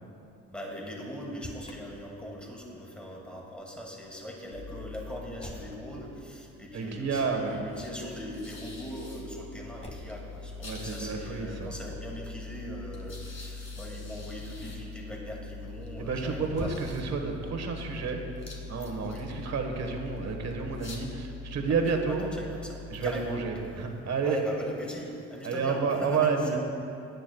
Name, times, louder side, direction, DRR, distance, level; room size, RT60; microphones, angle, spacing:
voice 1, 0.5-16.9 18.9-19.2 21.7-21.8 22.1-23.4 24.2-26.6, equal, 5° left, -2 dB, 2.2 m, -40 dB
Motor vehicle (road), 1.2-1.8 5.4-5.8 7.7-8.1 9.8-10.2 11.8-12.2 16.4-17.3, left 1 dB, 20° left, 1.4 m, -44 dB
sound 1, 4.5-24.4, left 3 dB, 40° left, 2.1 m, -43 dB
voice 2, 6.7-7.6 10.6-11.7 16.0-18.4 18.7-22.3 22.9-24.4 25.4-26.6, right 5 dB, 60° right, 3 dB, 1.4 m, -30 dB
17.0 x 10.5 x 2.3 m, 2.7 s
cardioid pair, 90°, 30 cm